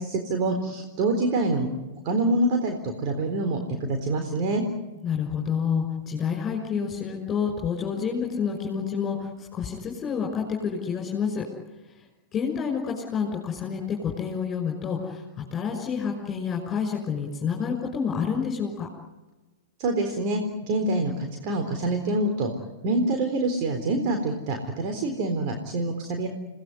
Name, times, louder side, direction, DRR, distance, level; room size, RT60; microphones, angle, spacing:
voice 1, 0.0-1.7 2.0-4.6 19.8-20.4 20.7-22.5 22.8-26.3, right 2 dB, 40° right, 4 dB, 3.8 m, -26 dB
voice 2, 5.0-11.5 11.8-12.1 12.3-15.2 15.5-18.9, left 6 dB, 25° left, 0 dB, 6.0 m, -28 dB
29.5 x 19.0 x 9.7 m, 1.1 s
figure-of-eight pair, 105°, 0 cm